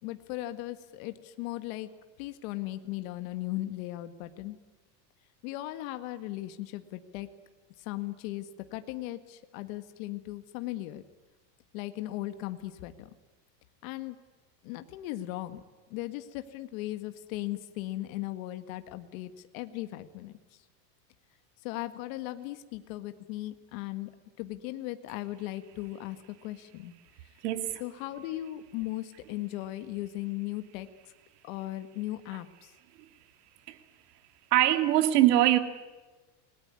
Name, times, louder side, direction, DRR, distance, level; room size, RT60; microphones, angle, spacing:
voice 1, 0.0-1.9 2.2-4.6 5.4-7.3 7.8-11.0 11.7-13.1 13.8-14.2 14.6-15.6 15.9-20.3 21.6-24.1 24.4-26.9 27.8-30.9 31.4-32.7, left 16 dB, 55° left, 1.8 m, -37 dB
voice 2, 27.4-27.8 33.7-33.8 34.5-35.6, right 13 dB, 65° right, 2.5 m, -22 dB
28.0 x 20.0 x 9.7 m
supercardioid pair, 155°, 50 cm